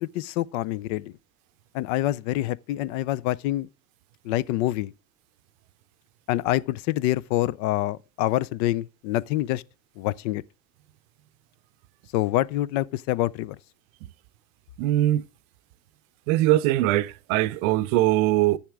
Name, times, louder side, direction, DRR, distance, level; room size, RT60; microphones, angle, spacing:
voice 1, 0.0-1.1 1.7-3.7 4.3-4.9 6.3-9.6 10.0-10.4 12.1-13.6, left 15 dB, 50° left, 0.5 m, -26 dB
voice 2, 14.8-15.2 16.3-18.6, right 15 dB, 55° right, 0.6 m, -21 dB
9.6 x 7.1 x 3.5 m
hypercardioid pair, 110°, 49 cm